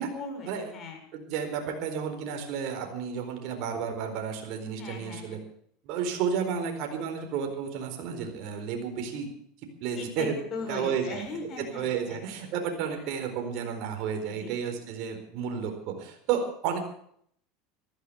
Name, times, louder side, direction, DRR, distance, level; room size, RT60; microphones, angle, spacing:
voice 1, 0.1-1.0 4.8-5.4 9.9-12.2 13.0-13.1 14.4-14.5, left 3 dB, 40° left, 3 dB, 6.6 m, -38 dB
voice 2, 1.1-5.4 5.8-9.3 9.8-10.4 10.7-11.2 11.6-16.8, right 7 dB, 60° right, 4 dB, 4.4 m, -32 dB
14.5 x 13.5 x 7.0 m, 0.66 s
supercardioid pair, 115°, 0 cm